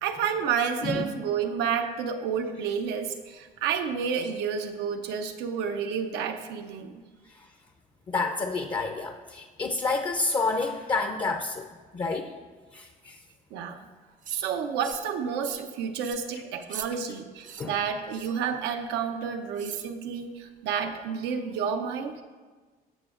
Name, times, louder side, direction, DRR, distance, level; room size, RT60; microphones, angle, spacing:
voice 1, 0.0-7.0 13.5-13.9 14.3-22.1, right 7 dB, 90° right, 6 dB, 0.7 m, -30 dB
voice 2, 0.8-1.2 7.3-7.5 8.1-12.3 12.7-13.2 17.6-17.8, left 3 dB, 30° left, 4 dB, 0.5 m, -29 dB
sound 1, 14.2-14.4 14.8-15.1 15.4-15.7 16.0-16.2 16.6-16.9 17.4-17.7 18.1-18.4 19.6-19.9, right 8 dB, 50° right, 0.6 m, -41 dB
17.0 x 6.1 x 2.4 m, 1.4 s
cardioid pair, 110°, 17 cm